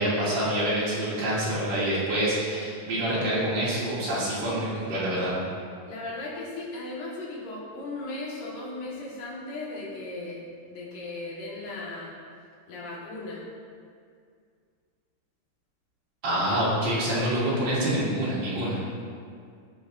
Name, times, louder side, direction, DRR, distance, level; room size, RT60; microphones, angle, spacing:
voice 1, 0.0-5.4 16.2-18.8, right 1 dB, 45° right, -9 dB, 3.3 m, -26 dB
voice 2, 5.8-10.4 10.7-12.1 12.7-13.5, left 2 dB, 55° left, -6 dB, 2.9 m, -37 dB
15.0 x 6.6 x 2.7 m, 2.2 s
omnidirectional pair, 4.9 m